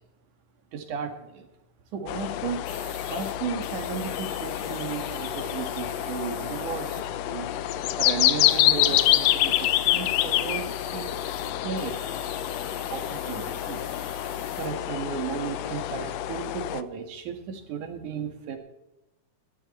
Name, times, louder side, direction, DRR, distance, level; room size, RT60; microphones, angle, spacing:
voice 1, 0.7-1.5 1.9-2.7 3.1-7.5 8.0-11.1 11.6-12.1 12.9-13.9 14.3-18.6, right 6 dB, 75° right, 6 dB, 3.2 m, -35 dB
sound 1, 2.1-16.8, left 13 dB, 75° left, 1.6 m, -27 dB
sound 2, 2.6-3.4 3.6-7.0 8.0-8.1 8.4-14.7, equal, ahead, 3.7 m, -45 dB
sound 3, 4.2-13.2, right 1 dB, 30° right, 3.8 m, -51 dB
17.0 x 13.5 x 4.3 m, 0.96 s
omnidirectional pair, 3.5 m